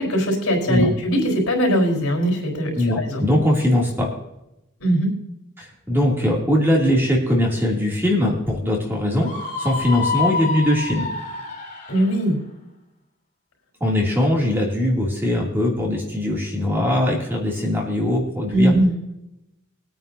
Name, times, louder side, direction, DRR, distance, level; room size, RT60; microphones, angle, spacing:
voice 1, 0.0-3.2 4.8-5.1 11.9-12.4 18.5-19.0, equal, 75° left, 1 dB, 4.5 m, -20 dB
voice 2, 2.8-4.1 5.6-9.3 9.6-11.1 13.8-18.7, left 1 dB, 10° right, -3 dB, 2.7 m, -21 dB
Screaming, 9.2-12.2, left 4 dB, 35° left, 2.1 m, -27 dB
21.5 x 9.2 x 2.8 m, 0.85 s
head